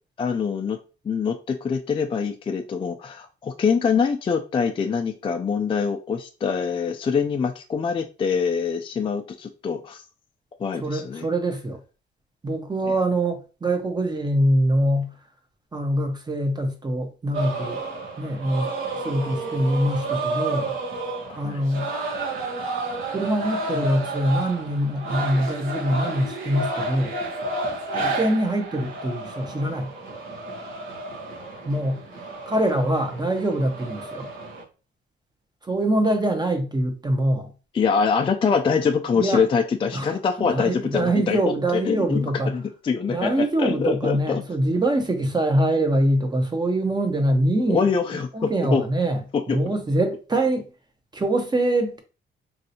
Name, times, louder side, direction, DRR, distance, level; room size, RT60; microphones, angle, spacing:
voice 1, 0.2-0.8 1.0-10.0 10.6-11.3 21.3-21.6 27.9-28.2 37.7-41.4 41.7-44.4 47.7-48.8 49.3-49.6, left 6 dB, 25° left, 0.4 m, -24 dB
voice 2, 10.8-11.8 12.4-15.1 15.7-17.8 18.2-18.7 19.0-20.7 21.4-21.9 23.1-27.1 28.0-29.9 31.7-32.0 32.5-34.3 35.6-37.5 39.1-39.4 39.9-40.1 40.4-42.5 43.1-47.9 48.3-49.2 49.5-50.7 51.1-52.0, right 1 dB, 20° right, 0.7 m, -24 dB
sound 1, 17.3-34.6, right 2 dB, 80° right, 1.1 m, -31 dB
3.2 x 2.7 x 2.7 m
cardioid pair, 90°, 20 cm